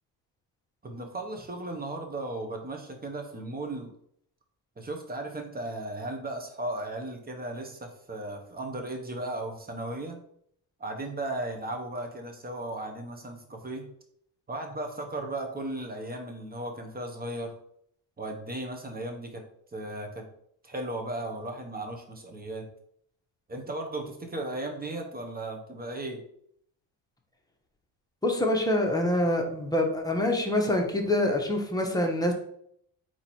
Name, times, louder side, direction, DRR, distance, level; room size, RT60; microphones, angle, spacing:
voice 1, 0.8-3.9 4.8-10.2 10.8-13.9 14.5-17.5 18.2-19.4 19.7-20.3 20.6-22.7 23.5-26.2, right 2 dB, 20° right, 3 dB, 1.1 m, -36 dB
voice 2, 28.2-32.3, left 1 dB, 10° left, 1 dB, 1.1 m, -25 dB
4.0 x 3.1 x 4.3 m, 0.69 s
supercardioid pair, 75°, 44 cm